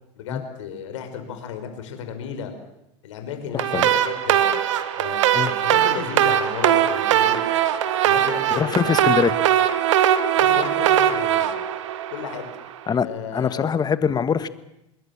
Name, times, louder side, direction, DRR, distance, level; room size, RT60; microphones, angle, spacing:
voice 1, 0.2-2.5 3.0-4.5 5.0-7.4 8.0-8.9 10.4-11.5 12.1-12.4 13.0-13.8, left 7 dB, 75° left, 7 dB, 5.5 m, -33 dB
voice 2, 3.5-3.9 5.3-5.5 8.6-9.3 12.9-13.1 13.3-14.5, left 7 dB, 25° left, 13 dB, 1.6 m, -22 dB
sound 1, 3.6-12.7, right 11 dB, 75° right, 1.8 m, -20 dB
26.0 x 21.0 x 7.3 m, 0.89 s
hypercardioid pair, 90°, 16 cm